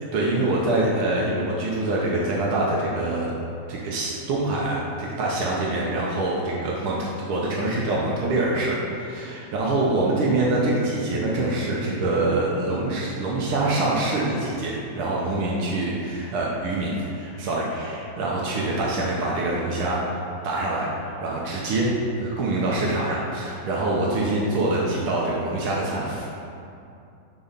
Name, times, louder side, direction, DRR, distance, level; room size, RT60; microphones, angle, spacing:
voice 1, 0.1-3.3 3.7-26.3, right 2 dB, 80° right, -4 dB, 1.2 m, -25 dB
6.1 x 4.0 x 5.2 m, 2.6 s
omnidirectional pair, 3.4 m